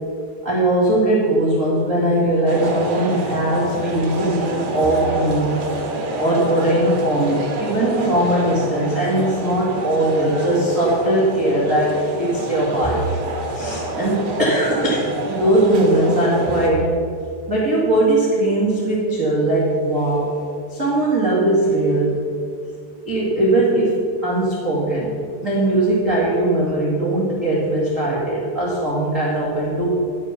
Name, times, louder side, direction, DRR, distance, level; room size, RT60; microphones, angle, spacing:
voice 1, 0.4-5.5 6.2-13.0 13.5-16.9 17.5-20.3 20.7-22.2 23.0-23.9 24.2-25.1 25.4-29.9, right 1 dB, 80° right, -6 dB, 0.7 m, -19 dB
sound 1, 2.5-16.7, right 2 dB, 60° right, 1.9 m, -28 dB
11.0 x 7.9 x 6.0 m, 2.2 s
omnidirectional pair, 5.5 m